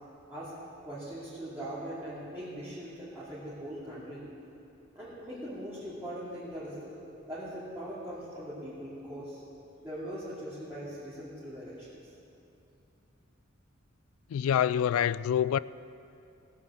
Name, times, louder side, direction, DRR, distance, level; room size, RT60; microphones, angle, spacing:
voice 1, 0.8-4.2 4.9-9.4 9.8-12.0, equal, 10° right, 2.6 m, -41 dB
voice 2, 14.3-15.6, left 9 dB, 90° left, 0.3 m, -26 dB
17.0 x 7.8 x 7.2 m
head